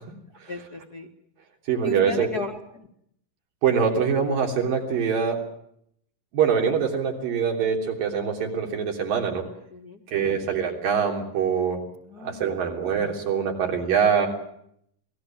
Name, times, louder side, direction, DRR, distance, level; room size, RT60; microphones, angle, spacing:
voice 1, 0.5-1.1 1.8-2.9 9.7-10.0 10.3-10.4 12.1-12.7, left 3 dB, 40° left, 2 dB, 1.5 m, -35 dB
voice 2, 1.7-2.3 3.6-5.4 6.3-9.4 10.1-11.8 12.2-14.3, right 7 dB, 80° right, 2 dB, 5.1 m, -24 dB
26.5 x 19.5 x 7.4 m, 0.72 s
omnidirectional pair, 3.9 m